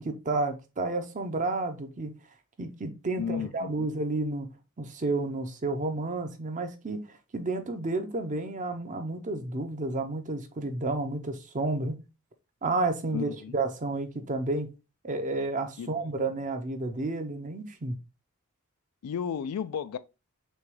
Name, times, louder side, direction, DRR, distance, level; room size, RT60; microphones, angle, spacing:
voice 1, 0.0-2.1 2.6-4.5 4.8-12.0 12.6-14.7 15.0-18.0, right 2 dB, 35° right, 0.6 m, -31 dB
voice 2, 3.2-3.9 13.1-13.5 15.8-15.9 19.0-20.0, left 7 dB, 80° left, 0.3 m, -33 dB
6.3 x 2.3 x 3.1 m
head